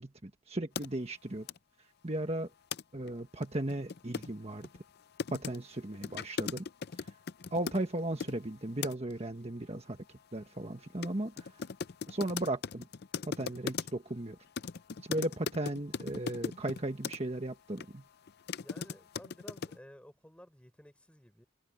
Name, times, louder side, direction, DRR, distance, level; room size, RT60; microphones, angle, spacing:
voice 1, 0.0-1.5 2.0-2.5 2.9-4.7 5.3-6.7 7.0-7.1 7.5-10.0 10.3-11.5 12.1-12.9 13.3-14.4 15.0-18.0, right 1 dB, 30° right, 1.4 m, -36 dB
sound 1, 0.7-0.9 1.5-1.6 2.7-2.8 3.1-3.2 3.4-8.4 8.8-9.1 11.0-11.1 11.4-14.1 14.6-17.2 17.8-17.9 18.3-19.8, left 5 dB, 50° left, 0.5 m, -38 dB
voice 2, 18.6-21.4, equal, 5° left, 4.3 m, -55 dB
head